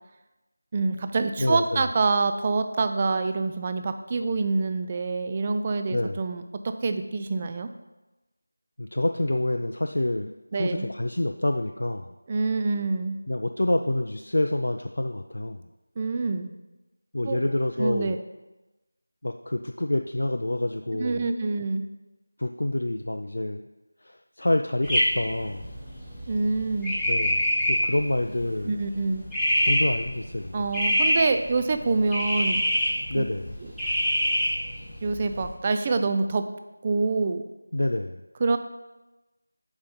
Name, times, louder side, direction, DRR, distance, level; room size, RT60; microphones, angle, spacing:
voice 1, 0.7-7.7 10.5-10.9 12.3-13.2 16.0-16.5 17.2-17.4 17.8-18.2 20.9-21.8 26.3-27.0 28.6-29.3 30.5-32.6 33.2-33.3 35.0-36.4 36.8-37.5 38.4-38.6, right 3 dB, 25° right, 8 dB, 0.3 m, -26 dB
voice 2, 1.4-1.8 5.9-6.2 8.8-12.1 13.3-15.6 17.1-18.2 19.2-21.3 22.4-23.7 24.0-25.7 27.1-28.7 29.6-30.6 33.1-33.5 37.7-38.2, left 1 dB, 65° left, 5 dB, 0.3 m, -27 dB
sound 1, 24.8-35.5, equal, ahead, 1.2 m, -27 dB
5.2 x 4.4 x 5.2 m, 1.1 s
figure-of-eight pair, 170°, 0 cm